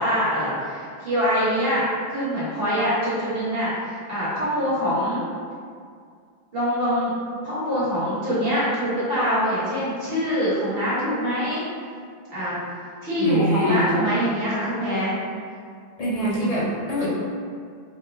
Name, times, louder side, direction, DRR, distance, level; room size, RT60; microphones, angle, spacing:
voice 1, 0.0-5.2 6.5-7.1 7.4-11.6 12.3-12.6 13.0-15.1 16.0-16.5, equal, 70° right, -10 dB, 1.3 m, -24 dB
voice 2, 13.2-13.9 16.0-17.1, equal, 45° left, -7 dB, 0.7 m, -24 dB
3.1 x 2.3 x 3.3 m, 2.2 s
omnidirectional pair, 1.0 m